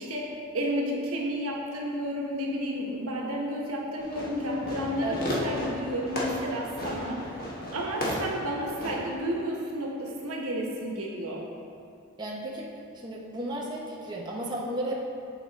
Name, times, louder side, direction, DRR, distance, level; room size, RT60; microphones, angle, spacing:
voice 1, 0.0-7.5 7.7-11.4, equal, 85° right, -2 dB, 1.2 m, -31 dB
Fireworks, 4.0-9.2, equal, 45° left, 1.2 m, -34 dB
voice 2, 12.2-12.6 13.0-14.9, right 1 dB, 20° right, -4 dB, 0.8 m, -34 dB
8.3 x 4.9 x 4.1 m, 2.5 s
head